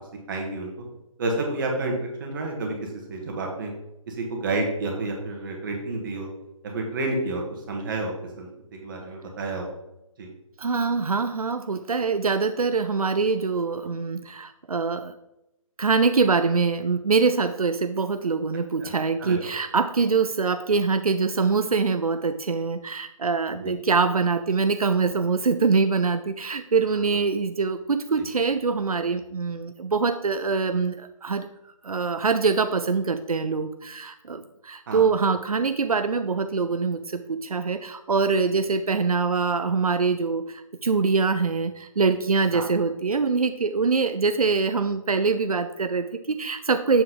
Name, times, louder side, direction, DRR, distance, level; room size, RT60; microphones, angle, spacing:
voice 1, 0.3-0.7 1.2-3.7 4.1-6.3 6.6-9.7 10.2-10.3 18.8-18.9 19.2-19.5 23.6-23.7 28.2-28.3 34.9-35.1 42.5-42.6, right 2 dB, 35° right, 1 dB, 1.8 m, -30 dB
voice 2, 10.6-15.1 15.8-31.5 31.8-47.0, right 4 dB, 85° right, 9 dB, 0.5 m, -24 dB
7.3 x 5.8 x 3.8 m, 0.90 s
figure-of-eight pair, 150°, 18 cm